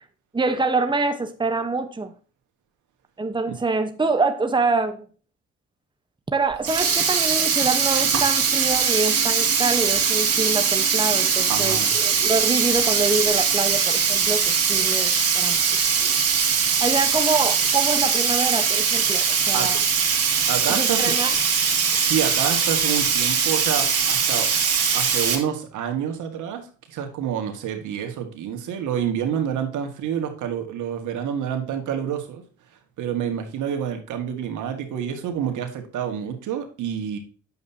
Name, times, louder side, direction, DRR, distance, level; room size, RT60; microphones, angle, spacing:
voice 1, 0.3-2.1 3.2-5.0 6.3-15.6 16.8-19.8 20.7-21.3, right 3 dB, 15° right, 7 dB, 1.1 m, -25 dB
Sink (filling or washing), 6.5-25.4, right 6 dB, 50° right, 2.6 m, -21 dB
voice 2, 11.5-11.9 19.5-19.7 20.5-21.2 21.9-24.5 24.9-32.4 33.0-37.2, right 9 dB, 80° right, 5 dB, 2.0 m, -28 dB
9.2 x 7.2 x 2.8 m, 0.38 s
cardioid pair, 90°, 30 cm